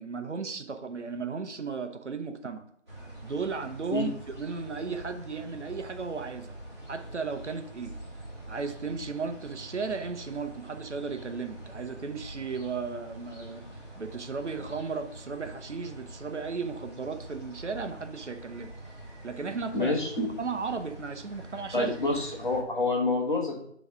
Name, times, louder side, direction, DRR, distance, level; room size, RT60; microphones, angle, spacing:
voice 1, 0.0-2.6 3.2-6.5 6.9-8.0 8.5-13.6 13.9-18.7 19.2-21.9, right 5 dB, 70° right, 7 dB, 0.8 m, -35 dB
sound 1, 2.9-22.6, right 1 dB, 20° right, 1.6 m, -45 dB
voice 2, 19.7-20.3 21.7-23.6, left 3 dB, 40° left, 0 dB, 1.3 m, -28 dB
8.0 x 3.2 x 4.8 m, 0.68 s
figure-of-eight pair, 170°, 36 cm